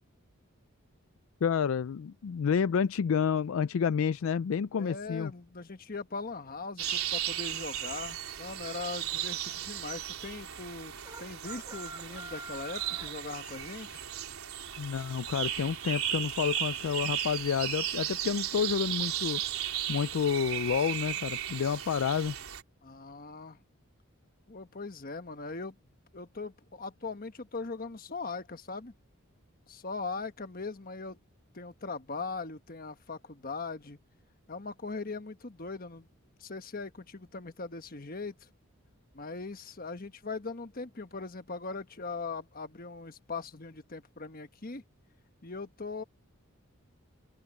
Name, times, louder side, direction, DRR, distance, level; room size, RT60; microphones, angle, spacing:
voice 1, 1.4-5.3 14.8-19.4 19.9-22.3, left 7 dB, 70° left, 0.4 m, -29 dB
voice 2, 4.8-10.9 11.2-14.0 22.8-23.6 24.5-25.7 26.1-28.9 29.7-31.2 31.5-34.0 34.5-36.1 36.4-38.5 39.1-44.8 45.4-46.0, left 4 dB, 40° left, 1.3 m, -40 dB
sound 1, 6.8-22.6, right 10 dB, 85° right, 4.0 m, -35 dB
sound 2, 11.0-13.2, right 2 dB, 15° right, 5.6 m, -45 dB
open air
head